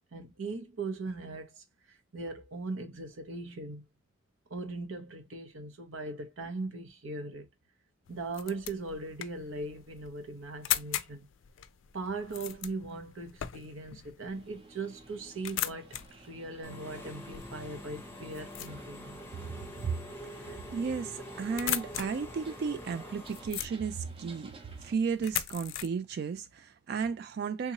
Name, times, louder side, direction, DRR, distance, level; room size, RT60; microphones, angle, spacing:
voice 1, 0.1-3.8 4.5-7.5 8.1-11.3 11.9-19.2, right 3 dB, 80° right, 0.8 m, -39 dB
sound 1, 8.0-25.9, left 12 dB, 75° left, 0.4 m, -41 dB
sound 2, 14.3-25.0, right 1 dB, 25° right, 0.7 m, -53 dB
Engine / Mechanisms, 16.6-23.5, equal, 10° left, 0.7 m, -46 dB
voice 2, 20.4-24.5 24.8-27.7, right 5 dB, 50° right, 0.3 m, -34 dB
3.6 x 2.8 x 2.8 m
head